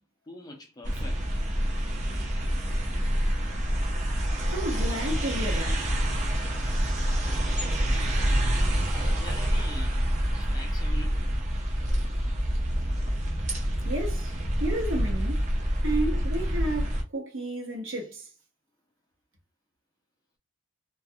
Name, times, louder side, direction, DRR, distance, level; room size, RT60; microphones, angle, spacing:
voice 1, 0.3-1.2 8.8-11.3, left 1 dB, 20° left, 0.4 m, -44 dB
sound 1, 0.8-17.0, equal, 35° right, 0.5 m, -27 dB
voice 2, 4.5-5.9 13.8-14.3 14.6-15.5 15.8-18.3, right 1 dB, 60° right, 0.8 m, -32 dB
2.3 x 2.2 x 2.7 m
head